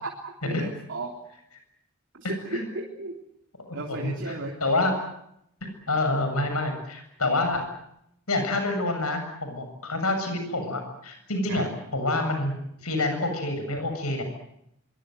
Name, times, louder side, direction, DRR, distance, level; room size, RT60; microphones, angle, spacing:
voice 1, 0.0-1.1 2.1-3.1 3.7-4.6 11.5-11.7, right 2 dB, 60° right, 0 dB, 3.5 m, -35 dB
voice 2, 2.2-2.6 3.7-4.3 4.6-4.9 5.6-7.6 8.3-12.5 12.8-14.2, left 2 dB, 80° left, 6 dB, 7.5 m, -27 dB
25.5 x 24.5 x 7.9 m, 0.79 s
head